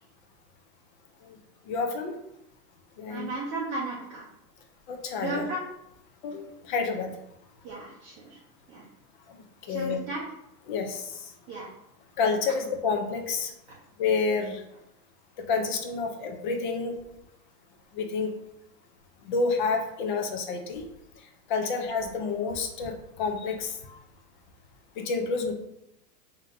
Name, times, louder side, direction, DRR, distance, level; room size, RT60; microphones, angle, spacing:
voice 1, 1.7-2.1 3.0-3.3 4.9-5.4 6.2-7.1 9.3-9.4 9.6-10.0 10.7-11.3 12.2-13.5 14.0-14.6 15.4-16.9 17.9-18.3 19.2-20.9 21.5-24.0 25.0-25.5, left 4 dB, 30° left, 4 dB, 0.4 m, -29 dB
voice 2, 3.1-4.3 5.2-5.6 7.6-8.4 8.7-8.8 9.7-10.2 11.5-11.7 21.6-21.7, right 3 dB, 25° right, -5 dB, 0.6 m, -35 dB
3.7 x 2.8 x 3.7 m, 0.83 s
hypercardioid pair, 145°, 49 cm